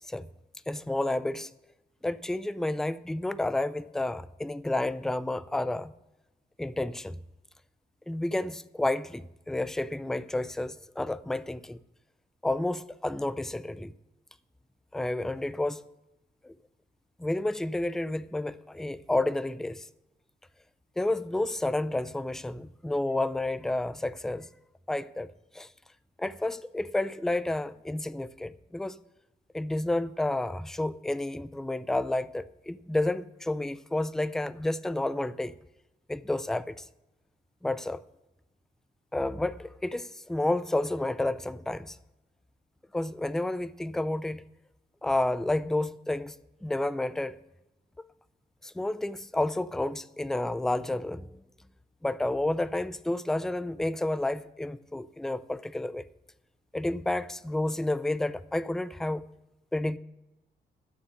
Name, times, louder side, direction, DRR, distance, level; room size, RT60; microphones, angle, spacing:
voice 1, 0.7-1.5 2.0-5.9 6.6-7.2 8.1-11.8 12.4-13.9 14.9-15.8 16.4-16.5 17.2-19.9 21.0-24.5 24.9-25.3 25.5-25.7 26.2-29.0 29.5-35.5 36.1-36.9 37.6-38.0 39.1-42.0 42.9-44.4 45.0-46.3 46.6-47.4 48.6-51.4 52.0-56.0 56.7-59.3 59.7-60.0, left 2 dB, 5° left, 0.3 m, -30 dB
12.5 x 6.8 x 7.3 m
cardioid pair, 135°, 17 cm